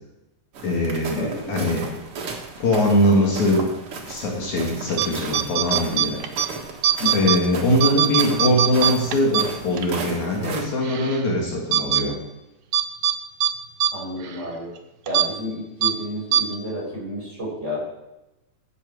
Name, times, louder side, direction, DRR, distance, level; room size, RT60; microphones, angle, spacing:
sound 1, 0.5-10.6, right 4 dB, 50° right, 2.1 m, -35 dB
voice 1, 0.6-1.9 2.6-3.7 4.1-6.2 7.1-12.1, left 1 dB, 65° left, -1 dB, 3.1 m, -22 dB
voice 2, 1.2-1.5 7.0-7.3 13.9-14.7 15.1-18.0, left 1 dB, 20° right, -5 dB, 5.2 m, -31 dB
sound 2, 4.9-5.1 5.3-6.5 6.8-7.4 7.7-9.9 10.3-10.4 10.8-11.2 11.7-12.0 12.7-13.2 13.4-13.5 13.8-13.9 14.2-14.4 15.1-15.3 15.8-15.9 16.3-16.4, right 11 dB, 75° right, 2.2 m, -21 dB
12.5 x 8.3 x 4.7 m, 0.94 s
omnidirectional pair, 3.7 m